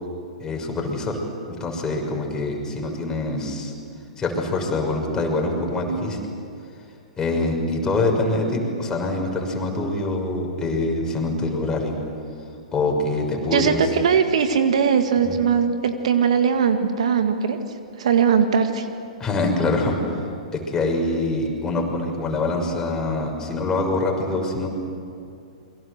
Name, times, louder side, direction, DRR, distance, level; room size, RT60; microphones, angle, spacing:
voice 1, 0.4-1.2 1.5-3.7 4.2-6.2 7.2-12.0 12.7-13.9 15.3-15.4 19.2-20.0 20.5-24.7, left 2 dB, 15° left, 1 dB, 6.2 m, -24 dB
voice 2, 13.5-17.6 18.0-18.9, right 7 dB, 65° right, 7 dB, 1.9 m, -20 dB
28.5 x 23.0 x 8.1 m, 2.4 s
figure-of-eight pair, 110°, 4 cm